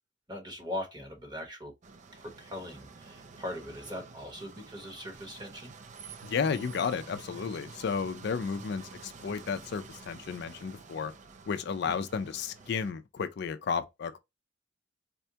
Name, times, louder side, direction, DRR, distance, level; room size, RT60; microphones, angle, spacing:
voice 1, 0.3-1.7 2.1-5.7 11.8-11.9, left 1 dB, 20° right, 1.2 m, -40 dB
sound 1, 1.8-12.9, right 4 dB, 40° right, 0.4 m, -49 dB
voice 2, 6.2-11.1 11.5-14.2, left 6 dB, 60° left, 0.4 m, -33 dB
4.2 x 2.2 x 2.7 m
head